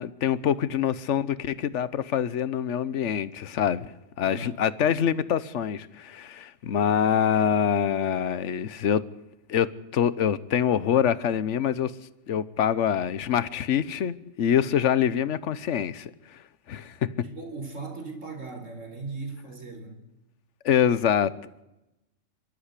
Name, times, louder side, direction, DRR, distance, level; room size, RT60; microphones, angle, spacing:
voice 1, 0.0-3.9 4.2-9.0 9.5-11.9 12.3-16.1 16.7-16.9 20.6-21.3, left 8 dB, 70° left, 1.2 m, -25 dB
voice 2, 4.2-4.6 17.2-20.0, right 3 dB, 75° right, 4.3 m, -38 dB
25.5 x 13.5 x 8.3 m
omnidirectional pair, 1.3 m